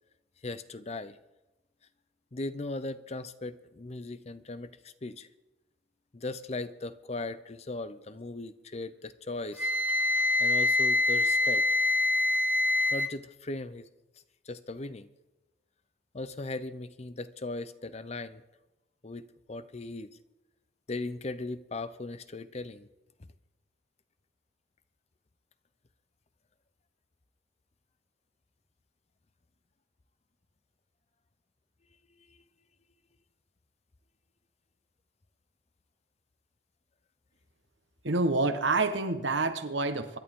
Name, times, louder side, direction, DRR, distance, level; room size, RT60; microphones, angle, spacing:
voice 1, 0.4-1.2 2.3-5.3 6.1-9.7 10.4-11.6 12.9-13.9 14.5-15.1 16.1-18.4 19.0-20.2 20.9-22.9 32.3-32.4, left 2 dB, 35° left, 14 dB, 0.6 m, -38 dB
Wind instrument woodwind instrument, 9.6-13.1, left 2 dB, 10° right, 0.5 m, -25 dB
voice 2, 38.0-40.2, right 3 dB, 80° right, 9 dB, 1.2 m, -27 dB
25.0 x 11.0 x 3.7 m, 1.0 s
head